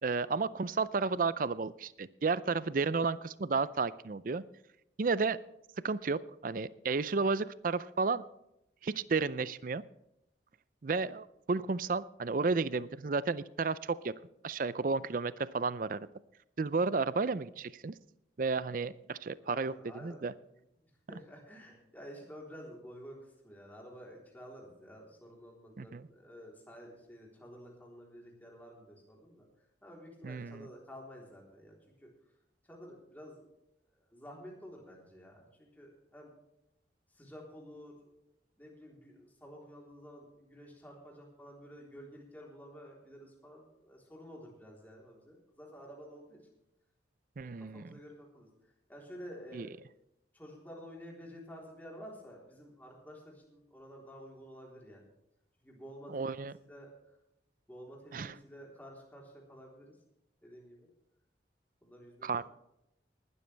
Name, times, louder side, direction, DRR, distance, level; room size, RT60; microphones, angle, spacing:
voice 1, 0.0-4.4 5.0-5.4 5.8-8.2 8.8-9.8 10.8-14.1 14.4-16.1 16.6-17.9 18.4-19.7 20.0-20.3 25.8-26.0 30.2-30.7 47.4-47.9 49.5-49.7 56.1-56.5 58.1-58.3 62.2-62.4, right 4 dB, 50° right, 17 dB, 0.5 m, -32 dB
voice 2, 19.4-29.5 29.8-32.1 32.6-33.5 34.0-36.3 37.1-38.0 38.6-46.4 47.4-49.7 50.3-55.0 55.6-56.4 56.7-57.2 57.7-60.0 60.4-60.9 61.8-62.3, equal, 10° left, -2 dB, 3.6 m, -51 dB
19.5 x 12.5 x 3.4 m, 0.83 s
head